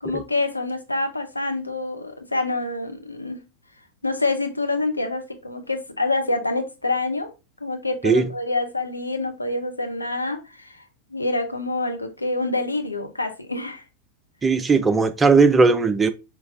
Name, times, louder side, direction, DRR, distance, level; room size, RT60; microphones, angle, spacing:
voice 1, 0.0-3.4 4.0-7.3 7.6-10.8 11.1-13.8, left 2 dB, 85° left, 0.7 m, -26 dB
voice 2, 14.4-16.1, right 4 dB, 15° right, 0.5 m, -17 dB
4.9 x 3.3 x 2.6 m
figure-of-eight pair, 90°, 0 cm